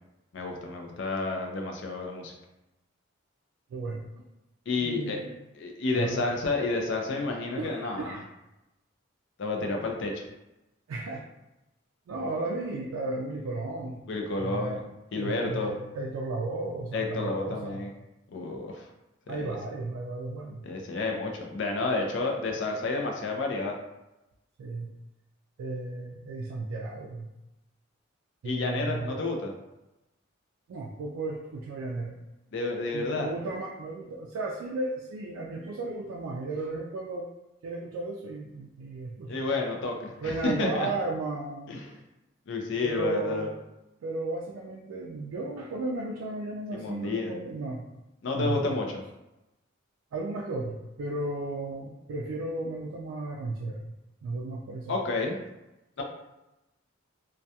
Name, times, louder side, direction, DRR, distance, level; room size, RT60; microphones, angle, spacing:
voice 1, 0.3-2.3 4.7-5.2 5.5-8.1 9.4-10.2 14.1-14.8 15.1-15.7 16.9-17.9 18.3-18.9 19.3-19.6 20.6-23.7 28.4-29.5 32.5-33.3 39.3-40.9 41.7-41.9 42.5-43.5 46.7-47.3 48.2-49.0 54.9-55.4 56.0-56.1, left 3 dB, 60° left, 1 dB, 0.4 m, -30 dB
voice 2, 3.7-4.2 4.8-5.3 5.9-6.3 7.6-8.3 10.9-11.2 12.1-14.0 14.4-14.8 15.2-17.9 19.3-20.6 24.6-24.9 25.6-27.3 28.4-29.1 30.7-32.2 32.9-37.3 37.6-39.4 40.2-41.8 42.8-43.5 44.0-47.9 48.3-48.7 50.1-53.9 54.2-55.0, right 2 dB, 80° right, -2 dB, 0.3 m, -34 dB
2.2 x 2.2 x 2.7 m, 0.96 s
head